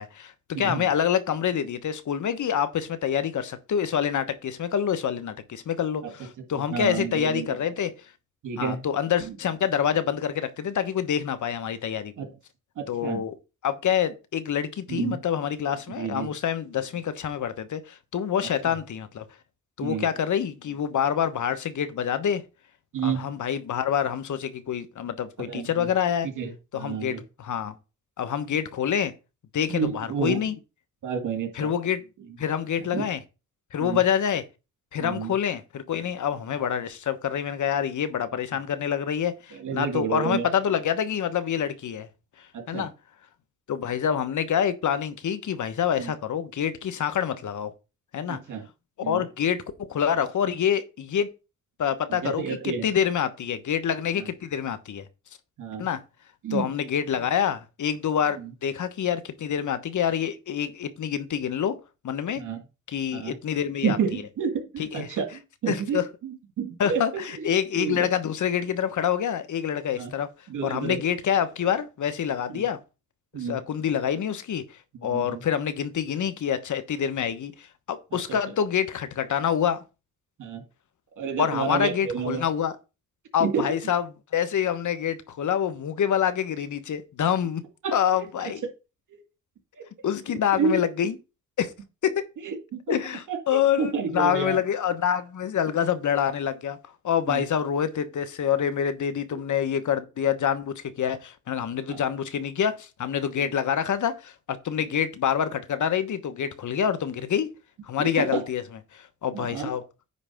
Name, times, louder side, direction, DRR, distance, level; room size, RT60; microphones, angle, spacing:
voice 1, 0.0-7.9 8.6-12.1 12.9-13.3 13.6-19.2 19.8-22.4 23.0-26.3 26.7-27.8 28.2-29.1 29.5-30.5 31.5-32.0 32.4-33.2 33.7-34.4 34.9-42.1 42.7-42.9 43.7-47.7 48.1-48.4 49.0-49.6 49.9-51.3 51.8-55.0 55.8-56.0 56.5-61.7 62.0-62.4 62.9-64.2 64.8-65.1 65.7-66.1 66.8-70.3 70.6-72.8 73.3-74.6 75.0-79.8 81.4-82.7 83.3-84.1 84.3-87.6 87.9-88.6 90.0-91.2 91.6-91.7 92.0-92.2 92.9-96.8 97.0-107.5 107.9-108.6 108.9-109.8, left 8 dB, 70° left, 1.2 m, -26 dB
voice 2, 0.5-0.9 6.7-7.5 8.4-8.8 12.2-12.3 12.8-13.2 14.9-15.2 16.0-16.3 18.6-18.8 19.8-20.1 22.9-23.3 25.5-25.9 26.2-27.2 29.7-30.4 31.0-31.7 32.8-33.1 33.8-34.0 35.0-35.3 39.5-40.5 42.5-42.9 46.0-46.1 48.3-48.6 49.0-49.2 52.1-52.9 54.2-54.3 55.6-55.8 56.4-56.7 58.4-58.5 62.4-62.6 63.1-63.3 63.8-67.2 67.7-68.1 70.0-70.1 70.5-71.0 72.5-72.6 73.3-73.6 75.0-75.4 78.3-78.4 80.4-80.6 81.2-82.4 83.4-83.7 87.8-88.0 88.4-88.5 89.1-89.2 89.8-89.9 90.3-90.8 92.4-93.0 93.3-94.6 97.3-97.4 101.9-102.0 103.4-103.5 108.0-108.4 109.3-109.7, right 6 dB, 85° right, 2.4 m, -30 dB
9.7 x 3.3 x 6.3 m
cardioid pair, 75°, 30 cm